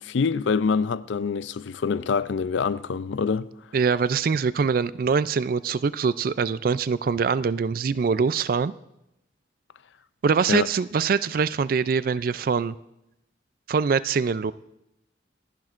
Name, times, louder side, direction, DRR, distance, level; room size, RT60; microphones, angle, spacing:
voice 1, 0.0-3.5 10.5-10.7, left 5 dB, 75° left, 0.4 m, -25 dB
voice 2, 3.7-8.7 10.2-12.8 13.7-14.5, right 5 dB, 50° right, 0.3 m, -23 dB
27.5 x 10.5 x 2.5 m
head